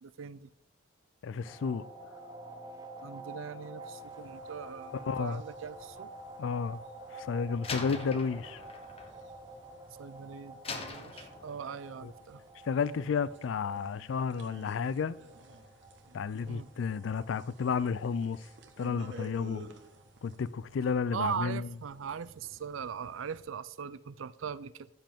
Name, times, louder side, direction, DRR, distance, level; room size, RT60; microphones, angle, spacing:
voice 1, 0.0-0.5 3.0-6.1 10.0-12.4 16.5-16.7 21.1-24.9, right 7 dB, 90° right, 0.5 m, -40 dB
voice 2, 1.2-1.8 4.9-5.4 6.4-6.8 7.1-8.6 12.0-12.1 12.7-15.2 16.1-18.5 18.8-19.6 20.2-21.7, left 5 dB, 80° left, 0.4 m, -32 dB
sound 1, 1.5-20.0, right 1 dB, 20° right, 0.8 m, -49 dB
sound 2, 4.0-23.5, right 1 dB, 70° right, 1.1 m, -55 dB
Slam, 7.6-10.1 10.6-11.9, left 3 dB, 30° left, 0.9 m, -42 dB
14.0 x 7.6 x 3.6 m
head